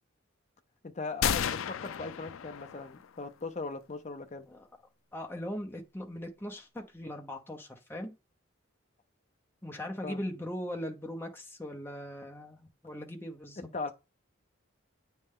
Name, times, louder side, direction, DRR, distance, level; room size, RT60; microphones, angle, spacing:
voice 1, 0.8-4.5 10.0-10.2 13.7-13.9, left 3 dB, 35° left, 0.6 m, -39 dB
sound 1, 1.2-3.1, left 8 dB, 75° left, 0.4 m, -32 dB
voice 2, 5.1-8.1 9.6-13.6, equal, 10° left, 0.9 m, -39 dB
8.7 x 3.3 x 3.7 m
head